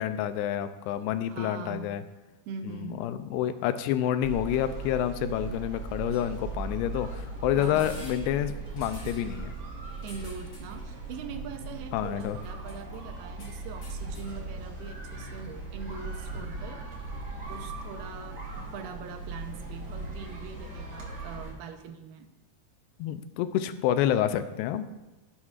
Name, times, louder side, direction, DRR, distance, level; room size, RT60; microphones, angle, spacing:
voice 1, 0.0-2.0 2.6-9.5 11.9-12.4 23.0-24.8, left 11 dB, 85° left, 11 dB, 2.6 m, -28 dB
voice 2, 1.3-1.9 2.5-3.0 7.6-8.0 10.0-16.9 17.5-22.3, right 5 dB, 85° right, 6 dB, 2.6 m, -42 dB
sound 1, 4.2-21.5, right 3 dB, 40° right, 1.6 m, -39 dB
sound 2, 6.1-18.2, equal, 45° left, 0.9 m, -50 dB
17.5 x 7.3 x 2.4 m, 1.1 s
omnidirectional pair, 4.7 m